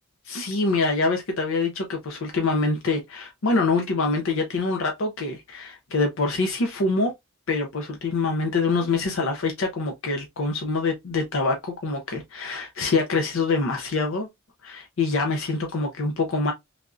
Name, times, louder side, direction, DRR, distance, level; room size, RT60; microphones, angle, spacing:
voice 1, 0.2-7.1 7.5-14.3 14.6-16.5, left 3 dB, 65° left, 0.6 m, -25 dB
3.3 x 2.4 x 2.4 m
head